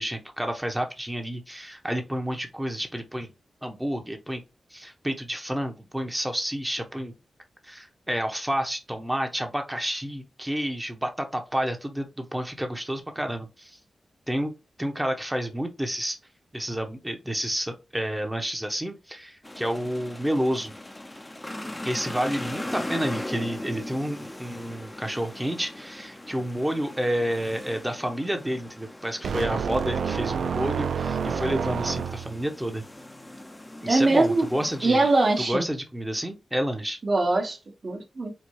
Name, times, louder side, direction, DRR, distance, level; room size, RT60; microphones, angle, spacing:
voice 1, 0.0-3.3 3.6-4.4 4.7-7.1 7.6-13.8 14.3-14.5 14.8-16.2 16.5-20.7 21.8-32.8 33.8-35.1 35.4-37.0, equal, 10° right, 0.9 m, -30 dB
sound 1, 19.4-35.5, left 1 dB, 15° left, 0.7 m, -39 dB
sound 2, 29.2-32.5, right 6 dB, 85° right, 0.4 m, -28 dB
voice 2, 33.8-34.5 34.8-35.6 37.0-38.3, right 2 dB, 45° right, 1.2 m, -22 dB
4.2 x 2.2 x 4.6 m
wide cardioid pair, 85°, 0 cm